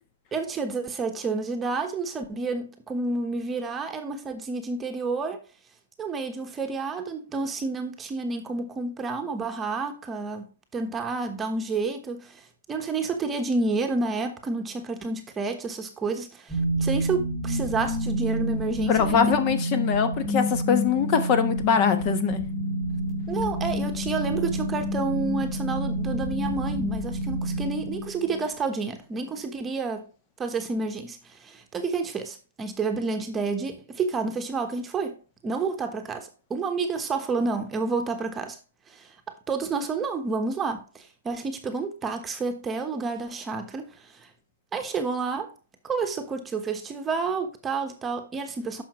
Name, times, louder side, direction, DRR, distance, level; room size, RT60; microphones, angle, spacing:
voice 1, 0.3-5.4 6.0-19.2 23.3-30.1 30.4-35.2 35.4-38.6 38.9-44.3 44.7-45.5 45.8-48.8, right 4 dB, 15° right, 1.2 m, -30 dB
sound 1, 16.5-28.5, equal, 5° left, 1.8 m, -28 dB
voice 2, 18.9-22.4, left 7 dB, 35° left, 1.2 m, -23 dB
9.9 x 6.1 x 3.1 m
hypercardioid pair, 145°, 0 cm